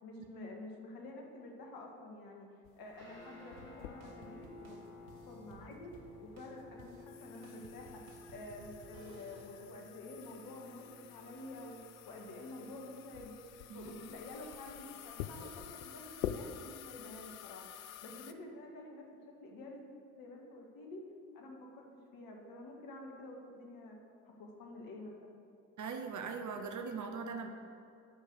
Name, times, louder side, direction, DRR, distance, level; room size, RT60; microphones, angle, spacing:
voice 1, 0.0-2.5 2.8-4.8 5.3-5.9 6.2-8.0 8.3-19.0 19.4-19.9 20.1-21.0 21.3-21.8 22.1-24.0 24.2-25.1, left 2 dB, 55° left, 0 dB, 1.8 m, -49 dB
sound 1, 2.6-18.3, left 10 dB, 80° left, 0.5 m, -48 dB
Guitar, 2.9-14.4, left 2 dB, 85° right, 2.0 m, -56 dB
sound 2, 3.6-9.5, right 5 dB, 70° right, 1.0 m, -59 dB
voice 2, 25.8-27.5, right 5 dB, 45° right, 5 dB, 1.1 m, -40 dB
11.0 x 4.9 x 6.7 m, 2.6 s
figure-of-eight pair, 50°, 41 cm